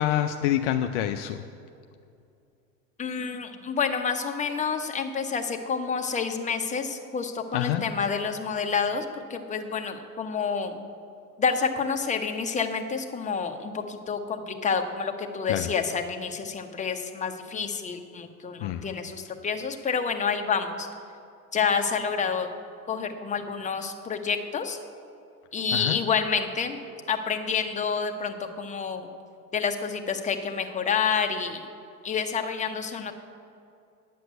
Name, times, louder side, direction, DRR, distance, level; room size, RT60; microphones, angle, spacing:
voice 1, 0.0-1.4 7.5-7.8 15.5-15.7 18.6-18.8 25.7-26.0, left 11 dB, 50° left, 7 dB, 0.6 m, -26 dB
voice 2, 3.0-10.8 11.4-20.9 21.5-22.5 22.9-24.8 25.5-26.8 27.1-29.1 29.5-31.6 32.0-33.1, left 6 dB, 15° left, 5 dB, 0.9 m, -28 dB
9.4 x 7.7 x 7.9 m, 2.6 s
figure-of-eight pair, 85°, 49 cm